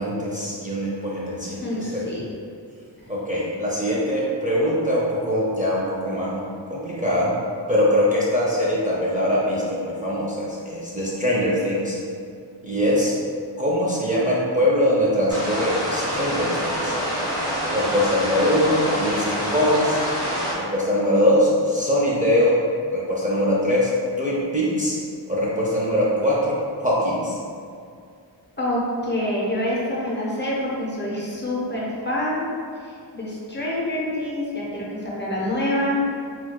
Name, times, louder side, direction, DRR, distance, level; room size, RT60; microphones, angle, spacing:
voice 1, 0.0-2.0 3.1-6.4 6.7-7.3 7.7-12.0 12.6-13.1 13.6-16.9 17.7-20.0 20.5-22.6 22.9-23.9 24.2-25.0 25.3-26.6 26.8-27.4, equal, 20° right, -7 dB, 0.5 m, -22 dB
voice 2, 1.4-2.2 3.0-3.1 28.6-32.5 32.8-36.0, left 1 dB, 25° left, -5 dB, 0.7 m, -26 dB
sound 1, 15.3-20.5, equal, 10° left, 1.2 m, -26 dB
4.2 x 2.3 x 2.2 m, 2.3 s
wide cardioid pair, 70°, 45 cm